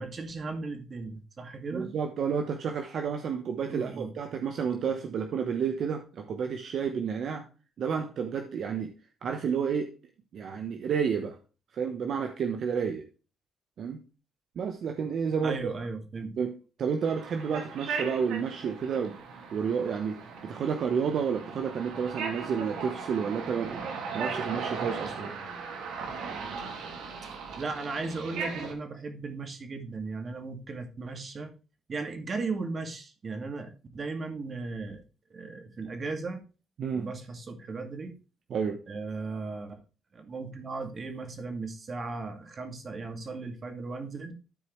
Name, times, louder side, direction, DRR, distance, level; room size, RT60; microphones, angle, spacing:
voice 1, 0.0-1.9 3.7-4.1 15.4-16.3 27.2-27.3 27.6-31.5 31.9-35.0 35.3-36.4 36.9-38.2 38.9-39.8 40.1-44.3, right 3 dB, 40° right, 6 dB, 2.1 m, -36 dB
voice 2, 1.7-7.5 7.8-8.9 9.2-9.9 10.3-11.4 11.7-13.0 13.8-14.0 14.6-15.7 16.4-16.5 16.8-19.2 19.5-23.9 24.1-25.3 36.8-37.1 38.5-38.8, right 6 dB, 65° right, 5 dB, 1.0 m, -30 dB
sound 1, 17.0-28.7, right 5 dB, 85° right, 2.1 m, -38 dB
13.0 x 4.7 x 3.1 m, 0.34 s
cardioid pair, 90°, 0 cm